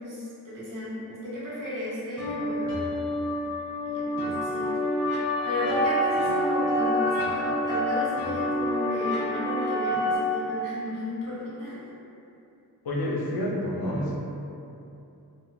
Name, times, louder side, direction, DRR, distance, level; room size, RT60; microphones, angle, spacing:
voice 1, 0.0-3.1 3.8-4.7 5.4-11.8, left 1 dB, 55° right, -9 dB, 0.9 m, -34 dB
sound 1, 2.2-10.2, left 1 dB, 50° left, 1.1 m, -27 dB
voice 2, 12.8-14.1, left 1 dB, 70° left, -4 dB, 0.6 m, -28 dB
2.4 x 2.3 x 3.2 m, 2.7 s
wide cardioid pair, 45°, 38 cm